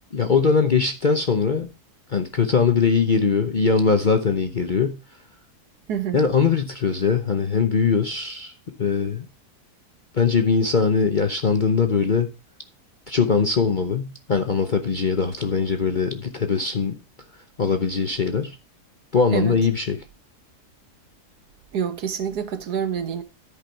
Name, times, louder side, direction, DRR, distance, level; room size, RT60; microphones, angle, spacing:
voice 1, 0.1-1.7 2.1-5.0 6.1-8.5 8.8-9.3 10.1-12.3 13.1-17.0 17.6-18.6 19.1-20.0, left 5 dB, 40° left, 0.7 m, -21 dB
voice 2, 5.9-6.2 19.3-19.6 21.7-23.2, right 8 dB, 75° right, 1.7 m, -27 dB
13.0 x 5.4 x 4.4 m
omnidirectional pair, 1.7 m